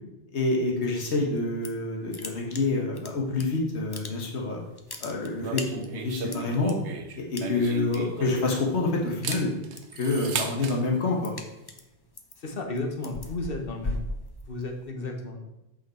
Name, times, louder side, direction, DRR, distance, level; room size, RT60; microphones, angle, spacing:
voice 1, 0.3-4.6 5.0-6.7 7.2-9.5 9.9-11.3, left 3 dB, 80° left, 0 dB, 1.5 m, -27 dB
sound 1, 1.4-1.9 2.1-3.4 3.8-4.4 4.7-6.7 7.3-8.0 8.3-8.6 8.9-10.0 10.4-14.9, left 2 dB, 25° left, 0.6 m, -38 dB
sound 2, 5.4-8.7 9.1-10.8, right 6 dB, 90° right, 1.1 m, -35 dB
voice 2, 12.4-14.0 14.5-15.4, left 2 dB, 55° left, 3 dB, 1.4 m, -33 dB
7.8 x 5.8 x 4.3 m, 0.92 s
omnidirectional pair, 1.1 m